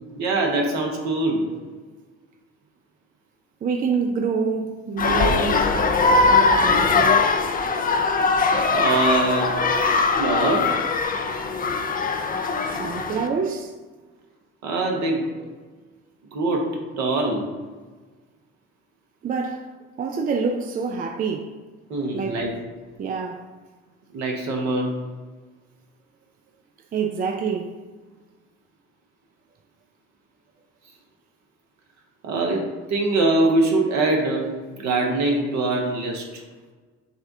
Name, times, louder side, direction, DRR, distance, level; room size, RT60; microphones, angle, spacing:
voice 1, 0.1-1.4 8.7-9.6 10.2-10.7 14.6-15.3 16.3-17.5 21.9-22.5 24.1-24.9 32.2-34.4 34.8-36.4, right 2 dB, 60° right, 1.1 m, -23 dB
voice 2, 3.6-5.8 6.3-7.4 12.6-13.7 19.2-19.7 20.0-21.6 22.1-22.5 23.0-23.5 26.9-27.8, right 5 dB, 30° right, 0.4 m, -27 dB
sound 1, 5.0-13.3, left 4 dB, 25° left, 0.5 m, -21 dB
6.7 x 2.3 x 2.7 m
hypercardioid pair, 55°, 31 cm